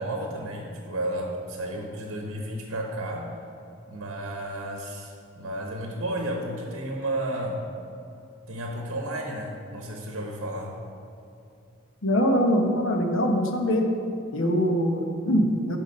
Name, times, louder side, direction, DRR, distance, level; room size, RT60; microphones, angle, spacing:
voice 1, 0.0-3.3 3.9-7.6 8.5-10.7, right 1 dB, 70° right, 1 dB, 1.0 m, -32 dB
voice 2, 12.0-13.9 14.3-15.8, equal, 70° left, 3 dB, 1.0 m, -23 dB
9.1 x 6.0 x 5.3 m, 2.6 s
head